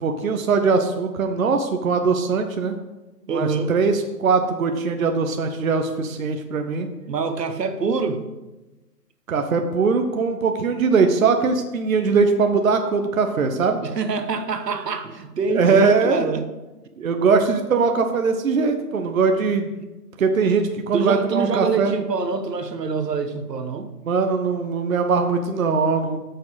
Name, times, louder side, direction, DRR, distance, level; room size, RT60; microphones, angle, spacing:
voice 1, 0.0-2.7 3.3-6.9 9.3-13.8 15.5-16.2 17.0-19.8 20.2-21.9 24.0-26.2, right 4 dB, 60° right, 6 dB, 0.9 m, -21 dB
voice 2, 3.3-3.7 7.1-8.3 13.8-16.4 19.8-19.9 20.9-23.9, right 4 dB, 80° right, 8 dB, 1.1 m, -25 dB
9.4 x 6.5 x 4.0 m, 1.1 s
hypercardioid pair, 170°, 48 cm